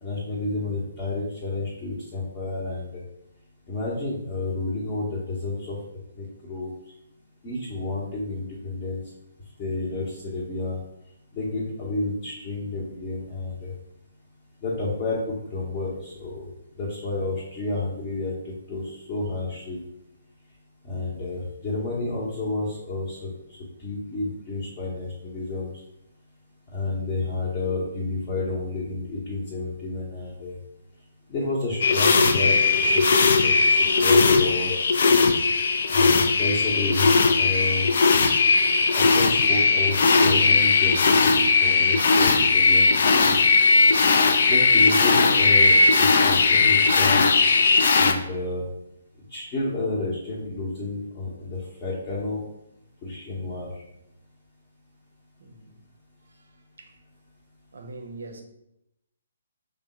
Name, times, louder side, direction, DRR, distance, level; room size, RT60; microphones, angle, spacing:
voice 1, 0.0-3.0 3.7-5.8 6.2-6.7 7.4-9.0 9.6-10.8 11.3-13.7 14.6-16.5 16.8-19.8 20.8-23.3 23.8-25.7 26.7-30.6 31.3-33.5 33.8-34.7 35.9-37.9 38.9-43.4 44.5-47.5 48.0-48.7 49.3-52.4 53.0-53.7, left 2 dB, 25° left, -6 dB, 0.7 m, -30 dB
sound 1, 31.8-48.1, left 4 dB, 50° left, 0.3 m, -18 dB
voice 2, 55.4-55.7 56.8-56.9 57.7-58.4, right 3 dB, 60° right, 3 dB, 0.6 m, -42 dB
3.3 x 2.1 x 4.1 m, 0.83 s
figure-of-eight pair, 130°, 0 cm